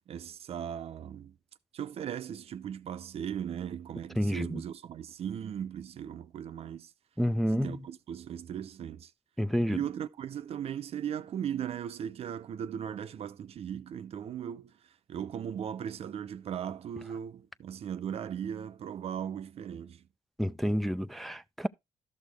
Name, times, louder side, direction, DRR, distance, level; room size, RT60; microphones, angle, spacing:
voice 1, 0.1-1.3 1.7-6.9 7.5-9.1 9.7-14.7 15.1-20.0, right 9 dB, 60° right, 0.7 m, -38 dB
voice 2, 4.2-4.6 7.2-7.8 9.4-9.8 20.4-21.7, equal, ahead, 0.4 m, -29 dB
12.5 x 6.4 x 3.5 m
cardioid pair, 75°, 12 cm